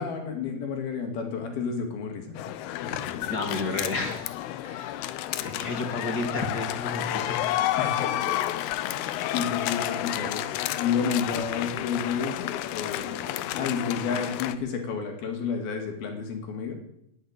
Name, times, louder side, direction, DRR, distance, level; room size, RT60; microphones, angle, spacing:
voice 1, 0.0-2.4 2.8-3.2 7.0-7.4 7.8-16.7, left 6 dB, 70° left, 4 dB, 4.2 m, -31 dB
sound 1, 2.4-14.6, left 13 dB, 90° left, 2.8 m, -31 dB
voice 2, 3.3-4.3 4.6-7.7, left 2 dB, 35° left, 4 dB, 1.9 m, -32 dB
18.0 x 8.5 x 8.9 m, 0.79 s
omnidirectional pair, 4.5 m